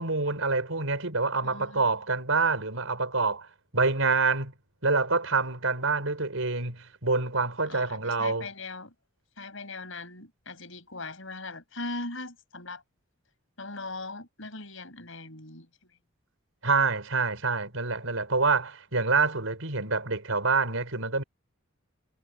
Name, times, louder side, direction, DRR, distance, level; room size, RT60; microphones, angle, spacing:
voice 1, 0.0-3.5 3.7-4.5 4.8-8.5 16.6-21.2, right 4 dB, 80° right, 4.7 m, -26 dB
voice 2, 1.4-1.9 7.7-8.9 9.4-12.8 13.6-15.7, left 3 dB, 70° left, 6.2 m, -40 dB
head